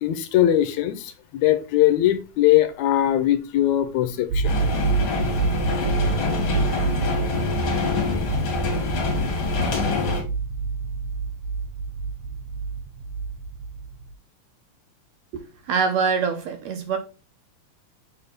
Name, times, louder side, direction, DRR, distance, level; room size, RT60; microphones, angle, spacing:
voice 1, 0.0-4.6, left 13 dB, 80° left, 1.9 m, -21 dB
sound 1, 4.3-14.1, right 4 dB, 90° right, 1.3 m, -28 dB
sound 2, 4.4-10.2, left 4 dB, 50° left, 2.1 m, -25 dB
voice 2, 15.3-17.0, right 5 dB, 70° right, 2.0 m, -24 dB
6.8 x 3.4 x 4.0 m
omnidirectional pair, 3.4 m